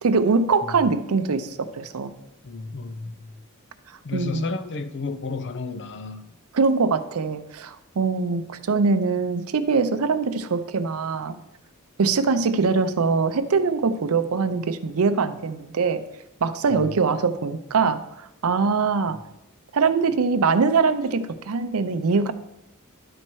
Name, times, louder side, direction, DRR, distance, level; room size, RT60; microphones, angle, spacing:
voice 1, 0.0-2.1 4.1-4.4 6.5-11.4 12.0-16.0 16.4-19.2 19.7-22.3, right 4 dB, 75° right, 0.5 m, -23 dB
voice 2, 2.4-3.3 4.0-6.3 16.7-17.0, left 3 dB, 55° left, 0.6 m, -32 dB
11.0 x 4.3 x 4.6 m
head